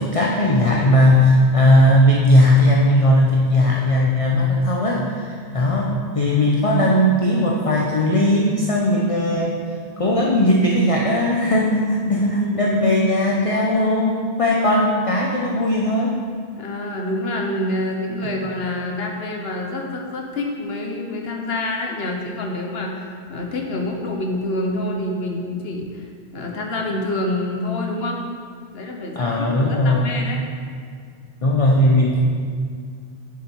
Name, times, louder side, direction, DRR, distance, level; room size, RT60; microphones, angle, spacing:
voice 1, 0.0-9.6 10.0-16.1 29.2-30.1 31.4-32.2, left 1 dB, 35° left, -3 dB, 0.8 m, -18 dB
voice 2, 12.1-12.8 16.6-28.2 28.7-30.4, left 1 dB, 75° left, 1 dB, 1.2 m, -27 dB
7.4 x 7.0 x 4.5 m, 2.1 s
omnidirectional pair, 1.1 m